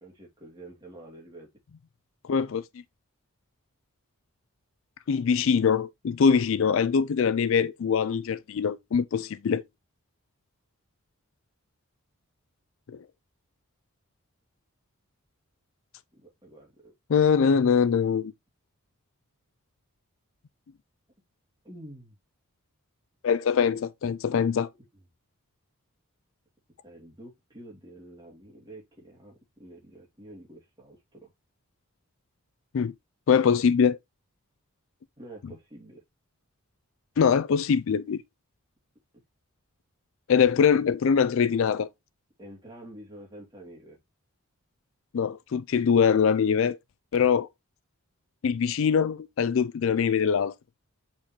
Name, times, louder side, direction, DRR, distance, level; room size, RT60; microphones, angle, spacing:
voice 1, 0.0-1.5 16.1-16.9 21.6-22.2 26.8-31.3 35.2-36.0 42.4-44.0, right 1 dB, 20° right, 2.6 m, -48 dB
voice 2, 2.3-2.6 5.1-9.6 12.9-13.0 17.1-18.3 23.2-24.7 32.7-32.9 33.3-34.0 37.2-38.2 40.3-41.9 45.1-46.8 47.1-47.5 48.4-50.5, left 6 dB, 60° left, 0.4 m, -23 dB
7.4 x 4.4 x 3.0 m
head